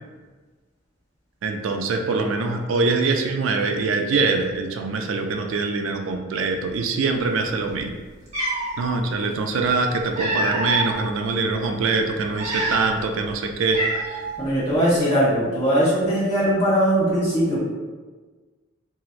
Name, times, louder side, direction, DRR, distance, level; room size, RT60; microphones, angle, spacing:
voice 1, 1.4-7.9 8.8-14.2, right 4 dB, 65° right, 4 dB, 0.3 m, -23 dB
Cat, 7.8-7.9 8.3-8.8 9.8-10.9 11.5-11.7 12.3-13.1 13.3-13.4 13.7-14.4, right 1 dB, 30° right, 0.8 m, -26 dB
voice 2, 14.4-17.6, equal, 30° left, -9 dB, 1.2 m, -20 dB
3.0 x 2.8 x 2.4 m, 1.4 s
head